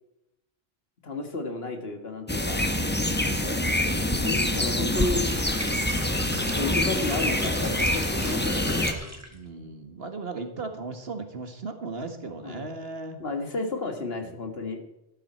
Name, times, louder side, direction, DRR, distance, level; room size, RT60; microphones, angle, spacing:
voice 1, 1.0-2.6 4.2-5.3 6.5-9.0 12.4-12.6 13.2-14.8, left 3 dB, 65° left, 5 dB, 2.0 m, -32 dB
sound 1, 2.3-8.9, left 1 dB, 10° left, 1.0 m, -26 dB
voice 2, 3.1-3.6 9.3-13.2 14.2-14.5, right 3 dB, 65° right, 6 dB, 1.9 m, -37 dB
sound 2, 4.8-9.4, right 1 dB, 15° right, 1.6 m, -38 dB
13.0 x 12.5 x 4.5 m, 0.89 s
omnidirectional pair, 1.1 m